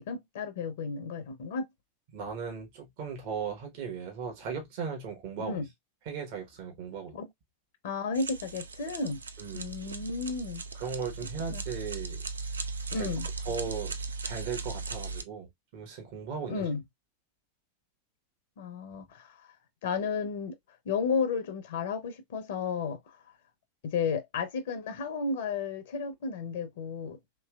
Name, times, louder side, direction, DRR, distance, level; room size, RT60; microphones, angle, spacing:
voice 1, 0.0-1.7 5.4-5.7 7.1-7.3 7.8-9.2 9.5-10.6 11.5-11.8 12.9-13.3 16.5-16.8 18.6-19.5 19.8-20.6 20.9-23.2 23.8-27.2, left 5 dB, 55° left, 0.7 m, -33 dB
voice 2, 2.1-5.6 6.1-7.1 9.4-9.7 10.8-12.2 13.0-13.1 13.4-13.9 14.2-15.5 15.7-16.7, right 6 dB, 50° right, 1.1 m, -37 dB
sound 1, 8.1-15.2, right 4 dB, 75° right, 0.4 m, -38 dB
3.1 x 3.0 x 2.3 m
figure-of-eight pair, 90°, 0 cm